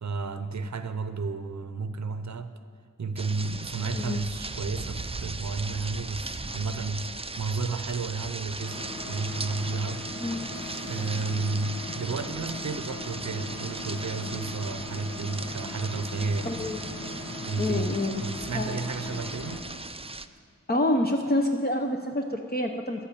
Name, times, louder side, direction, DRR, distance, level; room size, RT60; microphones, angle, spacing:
voice 1, 0.0-2.5 3.0-10.1 10.9-16.6 17.4-19.7, right 4 dB, 60° right, 11 dB, 0.7 m, -32 dB
sound 1, 3.2-20.3, right 3 dB, 20° right, 0.5 m, -38 dB
sound 2, 8.6-19.6, left 2 dB, 80° left, 1.9 m, -39 dB
voice 2, 16.4-16.8 17.6-18.2 18.5-18.8 20.7-23.1, left 1 dB, 30° left, 2 dB, 0.8 m, -27 dB
11.5 x 8.6 x 8.4 m, 2.2 s
wide cardioid pair, 50°, 31 cm